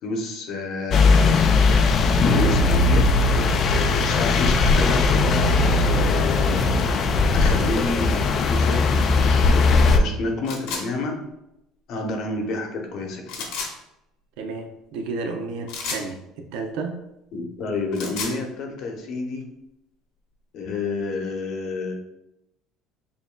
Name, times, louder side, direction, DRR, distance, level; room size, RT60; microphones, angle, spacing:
voice 1, 0.0-1.5 2.3-3.5 3.9-6.7 7.3-11.2 11.9-13.5 17.3-19.5 20.5-21.9, left 3 dB, 55° left, 3 dB, 0.8 m, -30 dB
sound 1, 0.9-10.0, left 3 dB, 40° left, 0.3 m, -18 dB
sound 2, 10.4-10.8 13.3-13.7 15.7-16.1 17.8-18.4, left 4 dB, 80° left, 0.9 m, -31 dB
voice 2, 14.4-17.0, right 3 dB, 85° right, 4 dB, 0.6 m, -32 dB
6.9 x 2.6 x 2.2 m, 0.88 s
cardioid pair, 135°, 0 cm